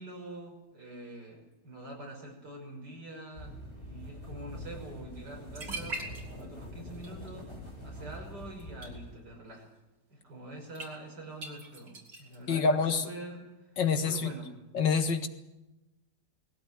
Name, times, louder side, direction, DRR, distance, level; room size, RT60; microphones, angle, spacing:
voice 1, 0.0-6.1 6.4-7.5 7.8-9.7 10.1-14.5, right 1 dB, 65° right, 1 dB, 6.3 m, -45 dB
sound 1, 3.3-9.2, equal, 55° left, 7.8 m, -44 dB
sound 2, 5.3-5.4 5.5-6.6 6.9-7.3 8.6-8.9 10.7-10.9 11.4-12.4, right 2 dB, 85° right, 4.4 m, -40 dB
voice 2, 12.5-13.0 13.8-14.3 14.7-15.3, left 5 dB, 90° left, 8 dB, 2.4 m, -26 dB
20.5 x 16.5 x 9.9 m, 1.0 s
omnidirectional pair, 1.9 m